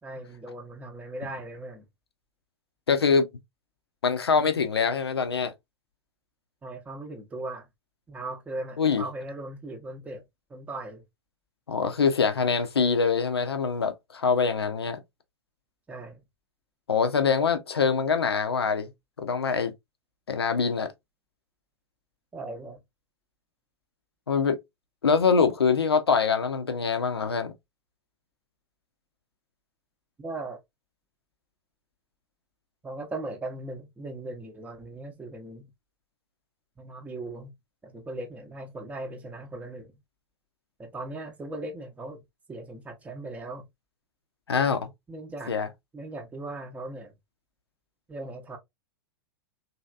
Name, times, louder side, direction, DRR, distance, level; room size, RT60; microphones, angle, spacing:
voice 1, 0.0-1.8 6.6-7.7 8.1-10.2 10.5-11.0 15.9-16.2 22.3-22.8 30.2-30.6 32.8-35.7 36.8-37.5 37.8-39.9 40.8-42.2 42.5-43.7 45.1-45.5 45.9-47.1 48.1-48.6, right 2 dB, 10° right, 0.7 m, -38 dB
voice 2, 2.9-3.3 4.0-5.5 8.8-9.0 11.7-15.0 16.9-18.9 19.2-19.7 20.3-20.9 24.3-24.6 25.0-27.5 44.5-44.9 45.5-45.7, left 5 dB, 75° left, 0.6 m, -24 dB
3.1 x 2.8 x 2.2 m
figure-of-eight pair, 100°, 13 cm